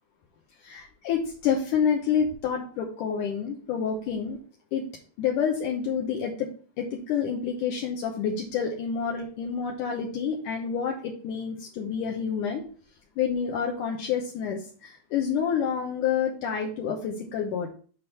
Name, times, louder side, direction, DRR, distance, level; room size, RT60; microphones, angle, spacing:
voice 1, 0.6-4.4 4.7-4.8 5.2-6.5 6.8-12.6 13.2-17.7, left 7 dB, 70° left, 0 dB, 2.3 m, -28 dB
8.4 x 3.8 x 5.6 m, 0.41 s
omnidirectional pair, 3.9 m